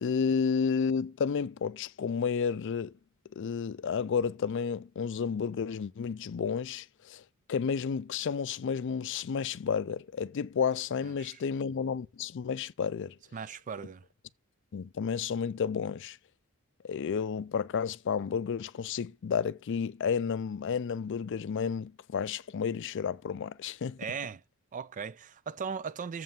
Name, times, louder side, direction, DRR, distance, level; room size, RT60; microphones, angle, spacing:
voice 1, 0.0-2.9 3.4-7.2 7.5-13.1 14.7-16.2 16.8-24.0, left 6 dB, 60° left, 0.4 m, -31 dB
voice 2, 11.0-11.4 13.3-14.0 24.0-24.4 24.7-26.2, right 6 dB, 35° right, 0.4 m, -38 dB
7.6 x 5.4 x 7.4 m
head